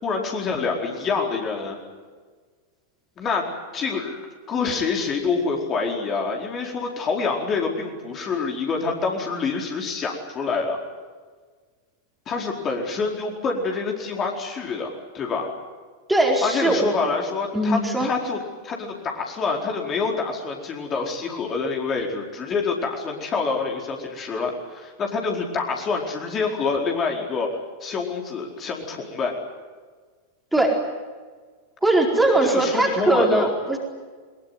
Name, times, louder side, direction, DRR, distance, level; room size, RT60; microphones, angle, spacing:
voice 1, 0.0-1.8 3.2-3.4 3.7-10.8 12.3-15.5 16.4-18.4 18.6-27.5 27.8-29.3 32.5-33.5, left 4 dB, 25° left, 1 dB, 4.6 m, -26 dB
voice 2, 16.1-16.9 17.5-18.1 30.5-30.8 31.8-33.8, right 2 dB, 5° right, 1 dB, 4.5 m, -20 dB
22.5 x 22.0 x 9.6 m, 1.5 s
figure-of-eight pair, 90°, 0 cm